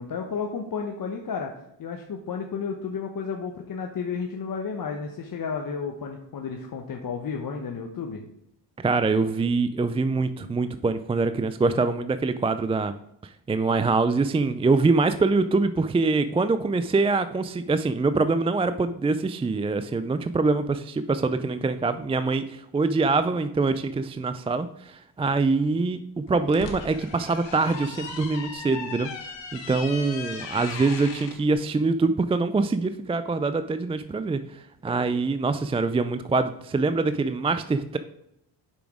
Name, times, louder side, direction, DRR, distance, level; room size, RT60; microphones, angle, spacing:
voice 1, 0.0-1.5 1.8-8.2, left 5 dB, 50° left, 2 dB, 1.1 m, -32 dB
voice 2, 8.8-12.9 13.2-29.1 29.5-38.0, right 3 dB, 15° right, 11 dB, 0.3 m, -24 dB
sound 1, 26.3-31.4, left 5 dB, 85° left, 1.4 m, -38 dB
7.0 x 6.0 x 4.9 m, 0.79 s
cardioid pair, 85°, 43 cm